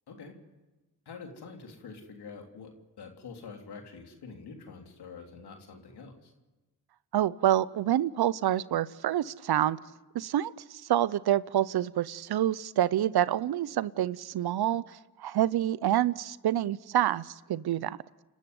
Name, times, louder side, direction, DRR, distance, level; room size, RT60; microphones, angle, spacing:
voice 1, 1.0-2.7 3.0-6.3, left 5 dB, 80° left, 3 dB, 3.4 m, -46 dB
voice 2, 7.1-9.8 10.1-18.0, right 12 dB, 75° right, 19 dB, 0.7 m, -27 dB
29.5 x 12.5 x 9.4 m, 1.1 s
supercardioid pair, 45°, 39 cm